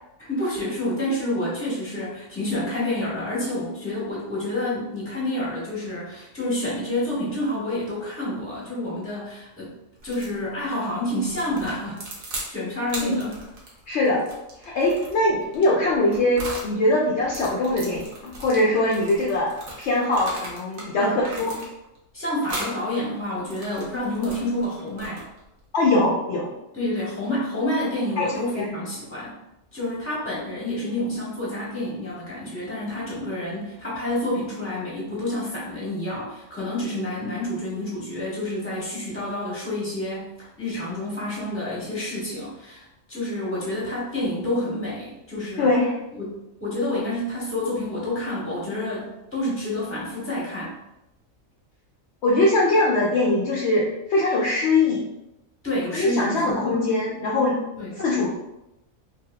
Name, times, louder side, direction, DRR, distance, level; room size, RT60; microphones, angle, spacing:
voice 1, 0.2-9.7 10.0-12.0 12.3-13.5 20.9-21.2 22.1-25.2 26.7-29.3 29.7-45.7 46.1-46.3 46.6-50.7 55.6-56.8 57.8-58.0, left 1 dB, 10° left, -7 dB, 1.0 m, -28 dB
sound 1, 10.0-10.4 11.2-12.5 12.9-16.7 17.2-20.9 21.2-22.0 22.4-22.8 23.3-25.5, right 1 dB, 75° right, 1.2 m, -38 dB
voice 2, 13.9-14.2 14.6-21.5 25.7-26.5 28.2-28.3 28.5-28.7 45.6-45.9 52.2-55.0 55.9-57.6 58.0-58.3, left 2 dB, 65° left, -3 dB, 0.7 m, -22 dB
3.3 x 2.8 x 2.2 m, 0.91 s
omnidirectional pair, 1.4 m